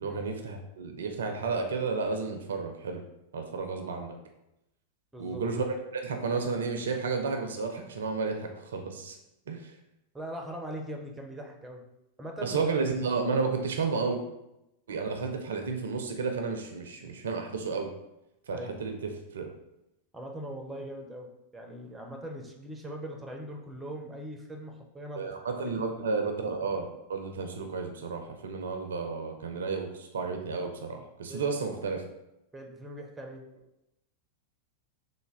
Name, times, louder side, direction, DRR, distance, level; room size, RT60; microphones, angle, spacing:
voice 1, 0.0-3.0 3.3-4.2 5.2-5.6 5.9-9.2 9.5-9.7 12.4-14.2 14.9-17.9 18.5-19.5 25.1-32.0, right 4 dB, 65° right, 4 dB, 0.4 m, -32 dB
voice 2, 10.1-11.8 12.2-12.6 18.5-18.7 20.1-25.3 25.6-25.7 31.3-31.4 32.5-33.4, right 1 dB, 10° right, 2 dB, 0.5 m, -41 dB
3.3 x 2.1 x 3.3 m, 0.87 s
figure-of-eight pair, 90°, 0 cm